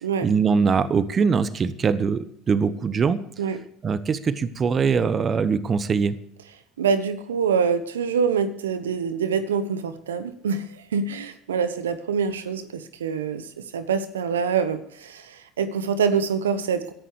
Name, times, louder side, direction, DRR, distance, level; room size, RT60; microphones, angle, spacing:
voice 1, 0.2-3.2 3.8-6.2, right 5 dB, 35° right, 15 dB, 1.0 m, -22 dB
voice 2, 6.8-13.5 13.7-16.9, right 6 dB, 80° right, 12 dB, 1.0 m, -25 dB
23.0 x 11.0 x 3.2 m, 0.68 s
hypercardioid pair, 70°, 0 cm